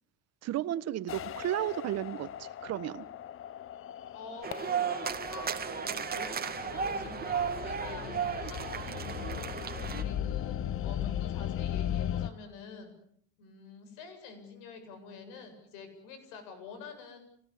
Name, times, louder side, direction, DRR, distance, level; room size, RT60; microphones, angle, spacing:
voice 1, 0.4-3.0, right 13 dB, 55° right, 13 dB, 1.5 m, -33 dB
sound 1, 1.1-12.3, left 10 dB, 40° left, 1.1 m, -37 dB
voice 2, 4.1-4.5 4.9-10.6 10.8-12.9 13.4-17.2, left 5 dB, 75° left, 8 dB, 7.9 m, -47 dB
sound 2, 4.4-10.0, right 7 dB, 30° right, 2.2 m, -34 dB
28.0 x 18.5 x 8.4 m, 0.66 s
supercardioid pair, 95°, 31 cm